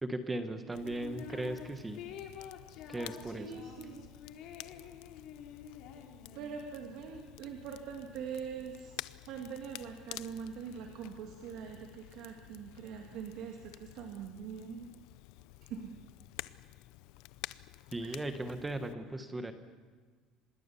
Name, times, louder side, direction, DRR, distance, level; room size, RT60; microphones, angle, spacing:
voice 1, 0.0-2.0 2.9-3.6 17.9-19.5, right 2 dB, 10° right, 8 dB, 1.3 m, -37 dB
Crackle, 0.7-18.9, left 18 dB, 70° left, 0.6 m, -51 dB
sound 1, 0.8-1.7 1.9-6.6, left 8 dB, 55° left, 3.1 m, -48 dB
voice 2, 3.3-4.1 6.3-8.9 9.3-14.9 15.6-15.9 18.0-18.2, right 7 dB, 55° right, 3 dB, 2.2 m, -43 dB
26.0 x 21.0 x 7.0 m, 1.4 s
cardioid pair, 180°, 0 cm